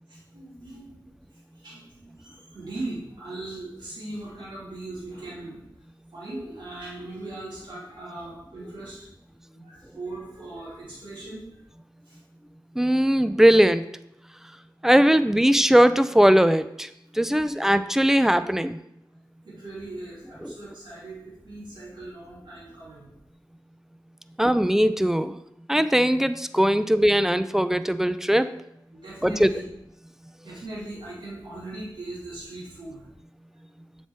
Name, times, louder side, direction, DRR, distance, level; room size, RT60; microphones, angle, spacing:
voice 1, 0.1-5.6 6.1-9.1 9.5-11.6 12.0-12.2 19.4-23.1 28.9-29.6 30.3-33.1, right 2 dB, 70° right, -8 dB, 2.6 m, -39 dB
voice 2, 12.8-13.8 14.8-16.9 17.1-18.8 24.4-25.4 25.7-28.5 29.2-29.5, equal, 5° right, 12 dB, 0.4 m, -19 dB
7.3 x 4.3 x 3.4 m, 0.80 s
cardioid pair, 50°, 8 cm